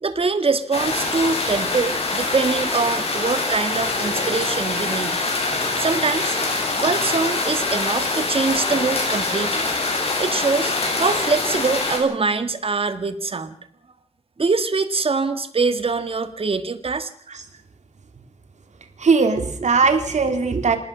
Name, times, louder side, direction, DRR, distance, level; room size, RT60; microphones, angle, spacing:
voice 1, 0.0-5.2 5.8-6.4 6.8-9.6 10.2-13.6 14.4-17.1, right 4 dB, 55° right, 10 dB, 2.0 m, -23 dB
sound 1, 0.7-12.0, left 3 dB, 60° left, 8.0 m, -24 dB
voice 2, 19.0-20.8, right 4 dB, 85° right, 7 dB, 2.9 m, -19 dB
27.0 x 19.0 x 6.2 m, 0.64 s
wide cardioid pair, 110°, 12 cm